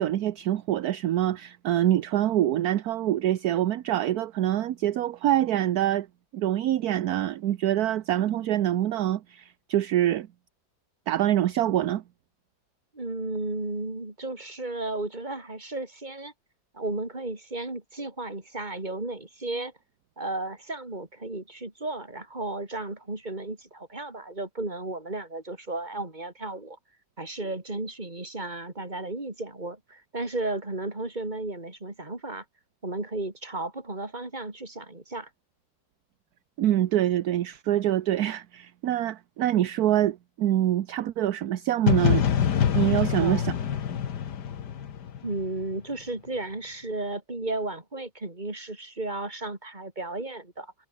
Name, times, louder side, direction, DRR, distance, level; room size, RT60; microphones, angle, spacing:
voice 1, 0.0-6.1 6.3-10.3 11.1-12.0 36.6-42.2 42.7-43.5, right 12 dB, 60° right, 1.2 m, -25 dB
voice 2, 12.9-16.3 16.7-19.7 20.2-26.8 27.2-32.4 32.8-35.3 43.2-43.5 45.2-50.7, right 2 dB, 25° right, 3.7 m, -34 dB
sound 1, 41.9-45.7, left 8 dB, 65° left, 1.9 m, -25 dB
omnidirectional pair, 2.0 m